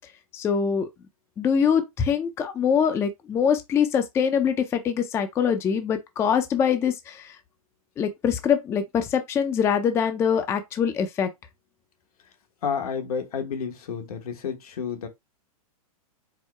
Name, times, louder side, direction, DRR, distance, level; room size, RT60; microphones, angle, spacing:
voice 1, 0.3-0.9 1.4-7.3 8.0-11.3, left 7 dB, 15° left, 0.4 m, -23 dB
voice 2, 12.6-15.1, left 6 dB, 75° left, 1.2 m, -30 dB
4.6 x 2.0 x 4.3 m
hypercardioid pair, 135°, 19 cm